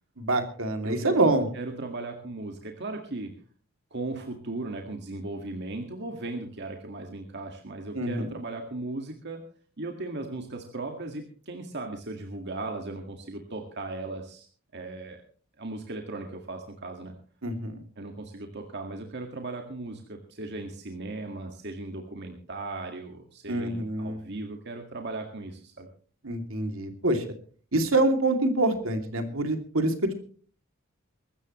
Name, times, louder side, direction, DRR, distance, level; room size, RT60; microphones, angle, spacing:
voice 1, 0.2-1.5 7.9-8.3 17.4-17.8 23.5-24.2 26.2-27.2 27.7-30.2, right 2 dB, 70° right, 6 dB, 2.8 m, -26 dB
voice 2, 0.8-3.3 3.9-9.4 9.8-14.5 14.7-15.2 15.6-17.2 18.0-25.9, right 2 dB, 55° right, 3 dB, 1.9 m, -37 dB
23.0 x 13.5 x 3.1 m, 0.42 s
head